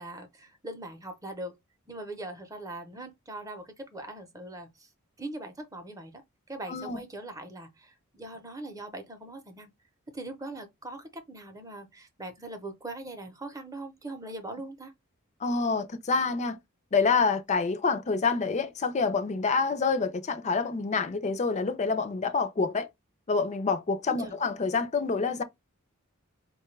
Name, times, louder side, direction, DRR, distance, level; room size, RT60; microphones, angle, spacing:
voice 1, 0.0-1.5 1.9-4.9 5.2-6.1 6.5-9.7 10.1-14.9 24.2-24.4, right 2 dB, 15° right, 0.7 m, -41 dB
voice 2, 6.7-7.0 15.4-16.6 16.9-22.9 23.3-25.4, left 4 dB, 35° left, 0.5 m, -27 dB
4.3 x 2.3 x 3.1 m
head